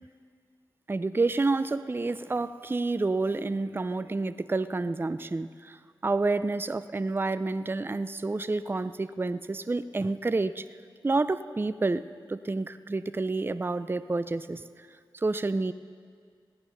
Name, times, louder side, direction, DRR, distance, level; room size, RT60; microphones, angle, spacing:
voice 1, 0.9-5.8 6.0-10.6 11.0-14.6 15.1-15.7, right 3 dB, 25° right, 14 dB, 0.4 m, -29 dB
17.0 x 11.0 x 5.7 m, 2.1 s
cardioid pair, 40°, 9 cm